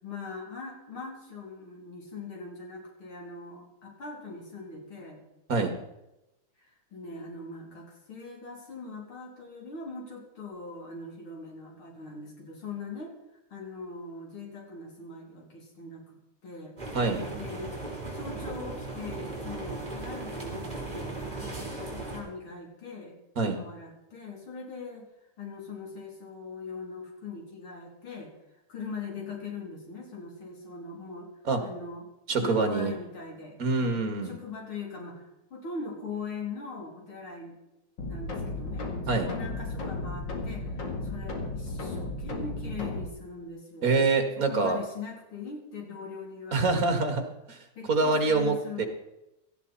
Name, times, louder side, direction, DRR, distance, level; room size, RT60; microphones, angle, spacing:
voice 1, 0.0-5.2 6.6-13.1 13.5-16.0 16.4-16.8 17.3-17.8 18.1-23.2 23.5-25.1 25.4-28.3 28.7-31.3 31.6-32.1 32.4-34.0 34.2-37.6 38.0-44.0 44.4-47.2 47.8-48.9, left 4 dB, 80° left, 0 dB, 4.1 m, -41 dB
sound 1, 16.8-22.2, right 2 dB, 20° right, 3.6 m, -37 dB
voice 2, 32.3-32.9 33.6-34.3 39.1-39.3 43.8-44.8 46.5-47.6 47.9-48.9, right 3 dB, 45° right, 6 dB, 2.2 m, -25 dB
sound 2, 38.0-43.0, left 2 dB, 60° left, 2.7 m, -34 dB
17.5 x 13.5 x 4.2 m, 0.93 s
omnidirectional pair, 2.3 m